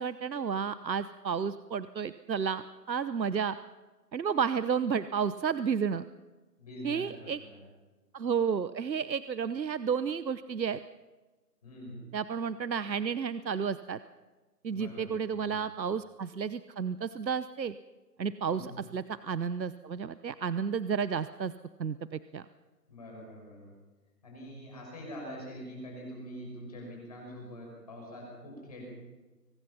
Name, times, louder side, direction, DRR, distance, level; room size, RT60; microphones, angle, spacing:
voice 1, 0.0-3.6 4.1-6.0 6.8-7.4 8.1-10.8 12.1-14.0 14.6-17.7 18.2-21.5 21.8-22.4, right 6 dB, 90° right, 14 dB, 1.0 m, -32 dB
voice 2, 6.6-7.6 11.6-12.1 14.7-15.6 18.5-18.7 22.9-23.8 24.2-28.8, equal, 20° left, -1 dB, 6.2 m, -45 dB
23.5 x 20.0 x 5.8 m, 1.2 s
figure-of-eight pair, 180°, 50 cm